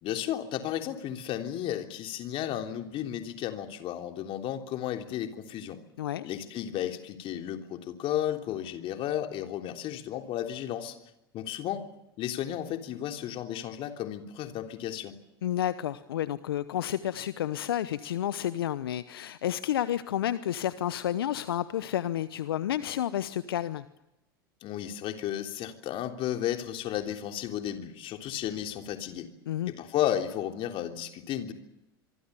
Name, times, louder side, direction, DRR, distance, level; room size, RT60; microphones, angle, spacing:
voice 1, 0.0-5.8 6.2-11.0 11.3-11.9 12.2-15.1 24.6-29.3 29.7-31.5, left 11 dB, 45° left, 5 dB, 3.4 m, -33 dB
voice 2, 15.4-23.8 29.5-29.7, left 11 dB, 75° left, 14 dB, 0.9 m, -30 dB
26.5 x 23.5 x 7.0 m, 0.92 s
hypercardioid pair, 85°, 12 cm